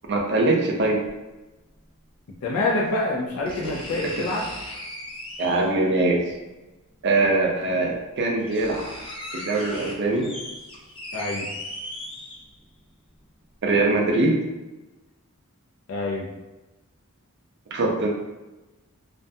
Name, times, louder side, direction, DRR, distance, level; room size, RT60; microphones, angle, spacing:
voice 1, 0.1-1.0 3.6-3.8 5.4-6.2 7.0-8.8 9.3-10.3 13.6-14.4 17.7-18.1, right 2 dB, 55° right, 0 dB, 0.5 m, -22 dB
sound 1, 1.1-1.2 2.6-2.7 3.5-5.8 7.2-7.3 7.9-8.0 8.2-12.7 13.1-13.2, left 1 dB, 25° left, 0.4 m, -37 dB
voice 2, 2.4-4.5 11.1-11.5 15.9-16.3, left 2 dB, 90° left, -1 dB, 0.4 m, -26 dB
2.4 x 2.2 x 2.6 m, 1.1 s
head